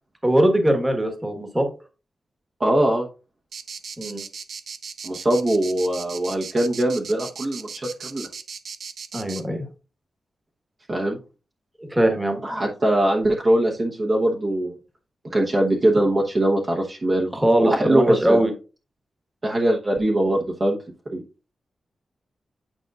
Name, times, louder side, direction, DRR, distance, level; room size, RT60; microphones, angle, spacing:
voice 1, 0.2-1.7 4.0-4.2 9.1-9.6 11.8-12.4 17.3-18.5, right 1 dB, 15° right, 4 dB, 1.3 m, -21 dB
voice 2, 2.6-3.1 5.0-8.3 10.9-11.2 12.4-14.7 15.2-17.3 17.6-18.4 19.4-20.8 21.1-21.2, right 1 dB, 35° right, -1 dB, 1.0 m, -22 dB
sound 1, 3.5-9.4, right 6 dB, 75° right, 0.5 m, -37 dB
9.1 x 5.2 x 2.4 m, 0.33 s
wide cardioid pair, 140°, 0 cm